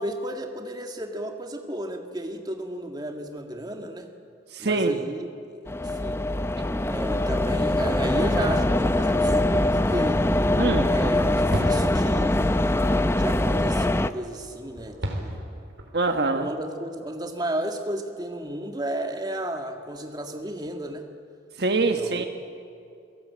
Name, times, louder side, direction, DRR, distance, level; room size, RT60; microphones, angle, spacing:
voice 1, 0.0-4.1 4.6-6.3 6.9-10.2 10.9-12.5 13.1-15.4 16.3-21.1 22.0-22.3, right 1 dB, 20° right, 4 dB, 1.9 m, -33 dB
voice 2, 4.5-5.0 10.6-10.9 15.9-16.5 21.6-22.3, right 3 dB, 60° right, 6 dB, 1.4 m, -24 dB
sound 1, 5.7-14.1, left 1 dB, 15° left, 0.6 m, -23 dB
sound 2, 9.5-10.8 11.5-13.8 14.7-15.9, equal, 80° right, 3.7 m, -34 dB
28.5 x 18.0 x 8.7 m, 2.4 s
head